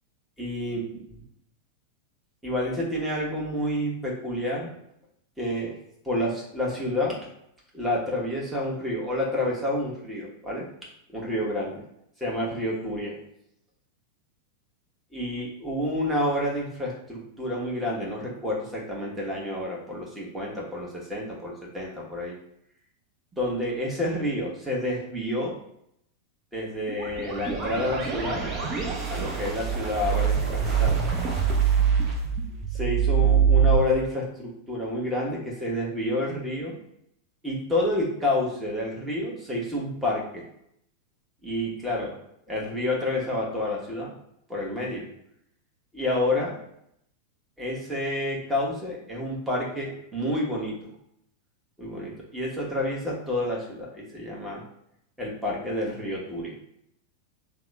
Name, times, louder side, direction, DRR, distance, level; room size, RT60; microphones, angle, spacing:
voice 1, 0.4-0.8 2.4-4.7 5.4-5.8 6.0-7.2 7.7-10.7 11.1-11.8 12.2-13.2 15.1-22.3 23.4-25.5 26.5-28.4 29.1-31.0 32.7-36.8 37.4-40.4 41.4-42.1 42.5-44.1 44.5-45.1 45.9-46.6 47.6-50.8 51.8-54.6 55.2-56.5, left 1 dB, 5° right, -4 dB, 1.0 m, -29 dB
sound 1, 26.9-33.8, right 7 dB, 30° right, 0.6 m, -24 dB
2.8 x 2.1 x 3.4 m, 0.76 s
figure-of-eight pair, 90°, 0 cm